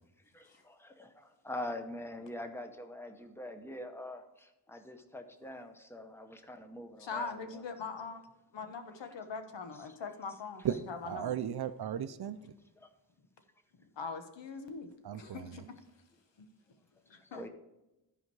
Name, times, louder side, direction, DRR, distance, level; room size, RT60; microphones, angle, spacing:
voice 1, 0.2-7.6 8.9-9.1 9.7-10.0 10.6-10.7 12.8-12.9 17.1-17.5, left 1 dB, 5° left, 7 dB, 0.7 m, -44 dB
voice 2, 7.0-8.2 8.5-10.6 10.9-11.4 14.0-14.9 15.1-15.6 17.1-17.4, left 5 dB, 90° left, 7 dB, 1.2 m, -41 dB
voice 3, 11.0-12.5 15.0-15.7, right 10 dB, 65° right, 13 dB, 0.6 m, -36 dB
12.0 x 5.0 x 4.7 m, 0.96 s
wide cardioid pair, 170°, 42 cm